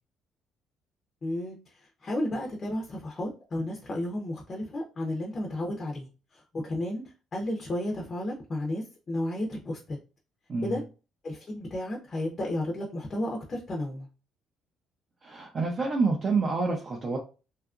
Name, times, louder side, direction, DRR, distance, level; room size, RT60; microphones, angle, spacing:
voice 1, 1.2-1.6 2.0-6.1 6.6-7.0 7.3-10.0 10.6-10.8 11.2-14.1, left 1 dB, 30° left, 0 dB, 0.5 m, -32 dB
voice 2, 10.5-10.8 15.2-17.2, right 4 dB, 35° right, 0 dB, 0.4 m, -27 dB
2.7 x 2.4 x 2.4 m, 0.33 s
cardioid pair, 140°, 0 cm